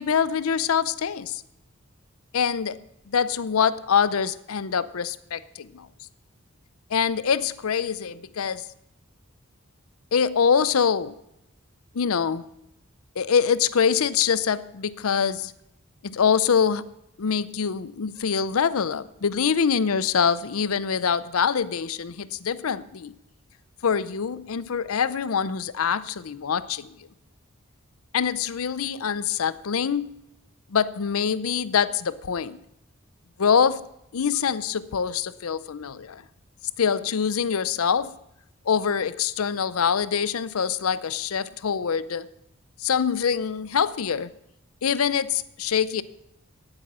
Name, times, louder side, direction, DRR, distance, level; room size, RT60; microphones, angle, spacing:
voice 1, 0.0-1.4 2.3-2.8 3.1-5.9 6.9-8.6 10.1-11.1 11.9-12.4 13.2-15.5 16.0-16.9 17.2-23.1 23.8-27.0 28.1-30.1 30.7-32.6 33.4-33.9 34.1-36.2 36.8-38.1 38.7-42.3 42.8-44.3 44.8-46.0, left 7 dB, 85° left, 16 dB, 0.6 m, -24 dB
9.6 x 8.9 x 7.3 m, 0.81 s
head